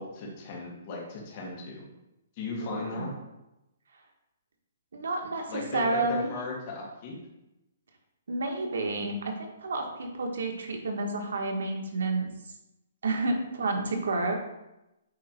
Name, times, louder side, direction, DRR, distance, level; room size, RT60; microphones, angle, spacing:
voice 1, 0.0-1.8 2.4-3.2 5.5-7.2, left 3 dB, 30° left, -3 dB, 1.8 m, -37 dB
voice 2, 2.6-3.1 4.9-6.3 8.3-12.3 13.0-14.3, right 2 dB, 80° right, 2 dB, 1.5 m, -30 dB
8.3 x 3.3 x 4.5 m, 0.92 s
hypercardioid pair, 175°, 0 cm